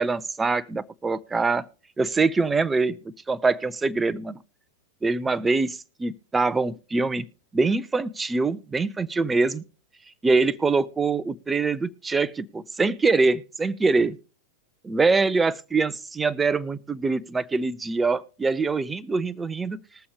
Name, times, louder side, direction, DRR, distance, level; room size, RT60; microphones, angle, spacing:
voice 1, 0.0-1.7 2.0-4.4 5.0-7.2 7.5-9.6 10.2-14.2 14.8-19.8, right 3 dB, 15° right, 18 dB, 0.5 m, -24 dB
20.5 x 7.0 x 3.3 m, 0.37 s
figure-of-eight pair, 90°, 0 cm